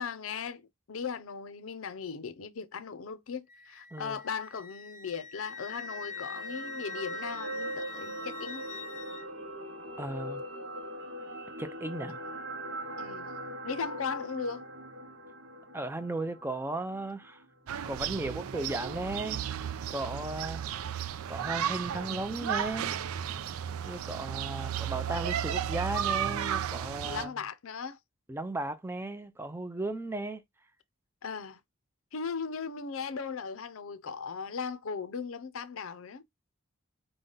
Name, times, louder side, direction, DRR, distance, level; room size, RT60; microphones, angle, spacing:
voice 1, 0.0-8.7 13.0-13.3 13.6-14.6 27.1-28.0 31.2-31.6 32.1-36.2, left 5 dB, 80° left, 0.6 m, -38 dB
Wind instrument woodwind instrument, 3.5-9.3, left 5 dB, 35° left, 0.5 m, -44 dB
sound 1, 5.5-17.8 18.1-18.3, right 1 dB, 60° right, 0.9 m, -41 dB
voice 2, 10.0-10.4 11.6-12.2 15.7-17.4 17.8-19.4 19.9-20.6 21.3-22.9 23.8-27.3 28.3-30.4, right 2 dB, 10° right, 0.5 m, -35 dB
sound 2, 17.7-27.3, right 9 dB, 90° right, 0.4 m, -34 dB
5.0 x 2.2 x 3.9 m
head